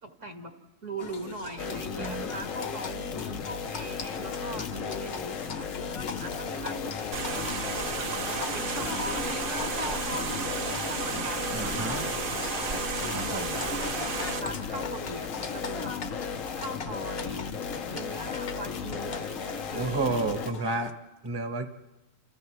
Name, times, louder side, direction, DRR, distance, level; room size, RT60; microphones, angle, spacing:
voice 1, 0.0-0.5 0.8-7.4 7.9-12.7 13.0-14.0 14.4-16.0 16.5-17.5 17.9-20.0, right 2 dB, 65° right, 3 dB, 2.2 m, -41 dB
Livestock farm animals working animals, 1.0-20.9, left 4 dB, 50° left, 1.1 m, -40 dB
sound 1, 1.6-20.5, left 6 dB, 80° left, 1.3 m, -36 dB
voice 2, 2.0-2.3 11.5-12.0 13.1-13.5 19.7-20.9 21.2-21.7, right 3 dB, 20° right, 6 dB, 1.0 m, -31 dB
sound 2, 7.1-14.4, right 5 dB, 50° right, 0.9 m, -33 dB
30.0 x 28.5 x 3.2 m, 1.0 s
omnidirectional pair, 1.4 m